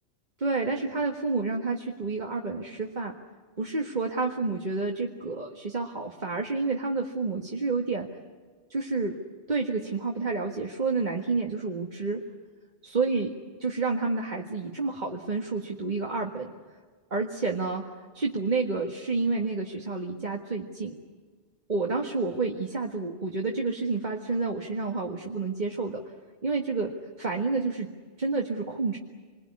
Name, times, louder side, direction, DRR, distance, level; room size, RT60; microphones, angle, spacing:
voice 1, 0.4-3.1 3.6-8.1 8.7-9.2 9.5-12.3 12.8-13.3 13.6-16.5 17.1-21.0 21.7-26.0 26.4-27.9 28.2-29.0, right 3 dB, 40° right, 1 dB, 1.8 m, -29 dB
27.5 x 22.0 x 9.6 m, 1.5 s
omnidirectional pair, 1.2 m